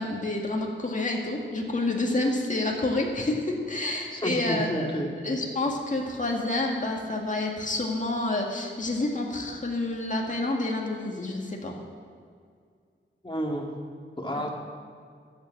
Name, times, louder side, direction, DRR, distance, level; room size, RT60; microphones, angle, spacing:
voice 1, 0.0-4.9 5.2-11.8 14.3-14.4, left 2 dB, 40° left, 0 dB, 1.9 m, -28 dB
voice 2, 4.1-5.1 13.2-13.6 14.2-14.5, equal, 25° left, 0 dB, 2.1 m, -30 dB
12.5 x 8.0 x 7.4 m, 2.1 s
wide cardioid pair, 75°, 21 cm